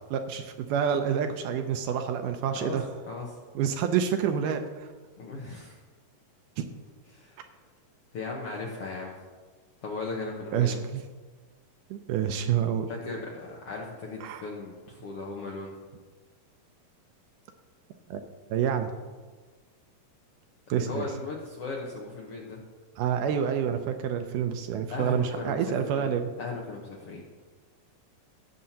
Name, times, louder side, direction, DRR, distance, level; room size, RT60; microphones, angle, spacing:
voice 1, 0.1-2.9 3.6-4.9 6.6-6.7 10.5-11.0 11.9-12.9 14.2-14.5 18.1-18.2 18.5-18.9 20.7-21.1 23.0-26.3, right 8 dB, 80° right, 7 dB, 2.0 m, -28 dB
voice 2, 5.2-5.8 7.1-7.4 8.1-9.1 9.8-10.8 12.9-15.7 20.7-22.6 24.9-25.6 25.9-26.1 26.4-27.3, left 3 dB, 65° left, -2 dB, 1.5 m, -37 dB
16.5 x 7.5 x 2.8 m, 1.4 s
omnidirectional pair, 3.9 m